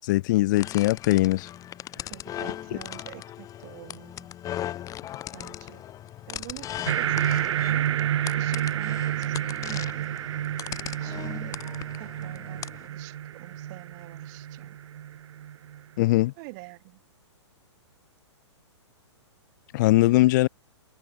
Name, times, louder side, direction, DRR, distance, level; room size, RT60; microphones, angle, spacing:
voice 1, 0.0-1.5 16.0-16.3 19.7-20.5, left 18 dB, 40° left, 0.5 m, -21 dB
sound 1, 0.5-12.9, left 12 dB, 20° left, 6.7 m, -38 dB
voice 2, 2.1-4.3 5.3-5.8 6.3-10.1 11.0-11.6 12.0-14.8 16.4-17.0 20.0-20.3, right 29 dB, 40° right, 4.3 m, -46 dB
sound 2, 6.9-15.8, right 11 dB, 70° right, 0.5 m, -30 dB
hypercardioid pair, 140°, 15 cm